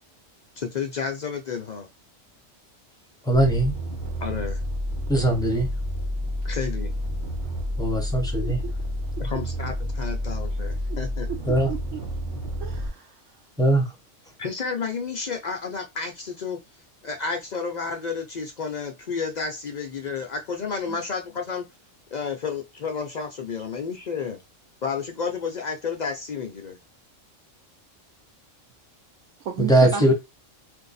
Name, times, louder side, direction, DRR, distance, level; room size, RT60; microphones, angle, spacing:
voice 1, 0.6-1.9 4.2-4.6 6.4-6.9 9.2-11.3 14.4-16.6 17.0-21.6 22.1-24.4 24.8-26.8, left 5 dB, 65° left, 0.4 m, -31 dB
voice 2, 3.2-3.7 5.1-5.7 7.8-8.6 11.5-11.7 13.6-13.9 29.6-30.1, right 1 dB, 5° left, 0.5 m, -20 dB
sound 1, 3.3-12.9, equal, 45° right, 0.9 m, -30 dB
voice 3, 8.4-8.7 10.9-11.0 11.3-12.0 12.6-13.2 20.9-21.0 29.4-30.1, right 8 dB, 75° right, 0.9 m, -34 dB
2.6 x 2.5 x 3.9 m
omnidirectional pair, 1.3 m